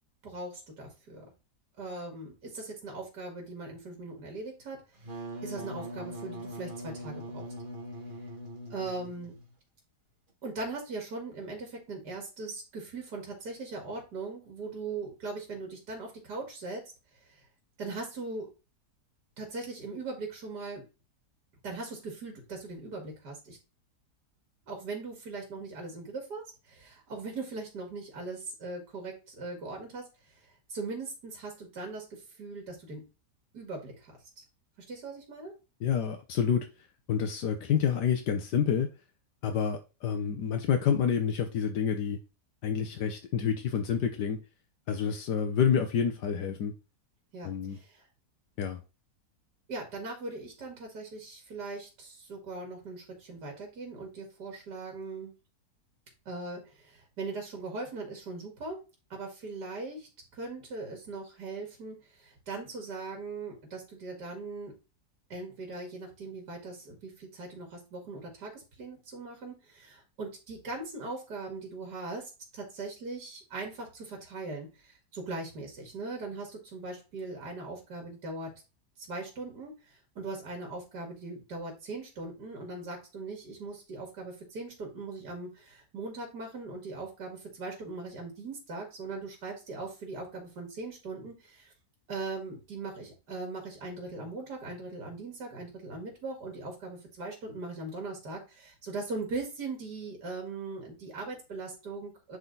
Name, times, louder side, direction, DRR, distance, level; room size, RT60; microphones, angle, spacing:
voice 1, 0.2-1.3 1.8-4.8 5.4-7.4 8.7-9.3 10.4-16.8 17.8-18.5 19.4-20.8 21.6-23.6 24.7-30.1 30.7-33.0 33.5-34.1 34.4-34.5 34.9-35.5 47.3-48.0 49.7-55.3 56.3-58.8 59.1-64.7 65.3-78.5 79.1-91.7 92.1-102.4, right 3 dB, 75° right, 2.6 m, -40 dB
Wind instrument woodwind instrument, 5.0-9.5, equal, 30° right, 1.6 m, -41 dB
voice 2, 35.8-36.7 37.1-38.9 39.4-42.2 42.6-44.4 44.9-46.7 47.4-47.8 48.6-48.8, left 7 dB, 85° left, 1.5 m, -28 dB
9.8 x 3.8 x 4.0 m
omnidirectional pair, 1.8 m